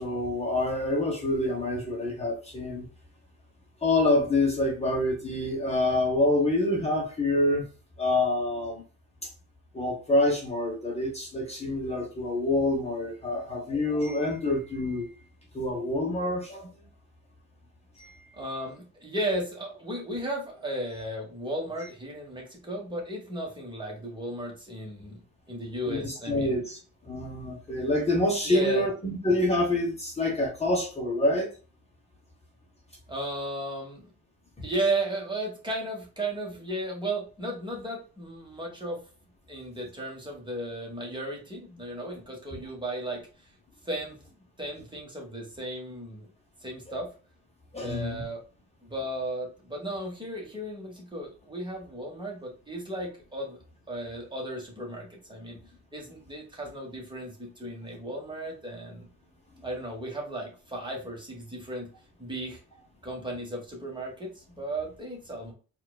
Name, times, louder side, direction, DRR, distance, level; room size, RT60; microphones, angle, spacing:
voice 1, 0.0-2.9 3.8-7.6 8.0-8.8 9.2-9.3 9.7-15.1 15.5-16.7 18.0-18.3 25.9-26.8 27.0-31.5 47.7-48.3, left 1 dB, 20° left, -1 dB, 0.9 m, -27 dB
voice 2, 18.3-25.2 25.5-26.6 28.4-28.8 33.1-34.1 34.6-39.0 39.5-43.3 43.8-44.2 44.6-46.3 46.6-47.1 47.7-48.4 48.8-53.6 53.9-55.6 55.9-59.1 59.6-61.9 62.2-62.6 63.0-65.5, right 1 dB, 15° right, 0 dB, 1.4 m, -35 dB
4.3 x 2.5 x 2.3 m, 0.36 s
cardioid pair, 90°, 30 cm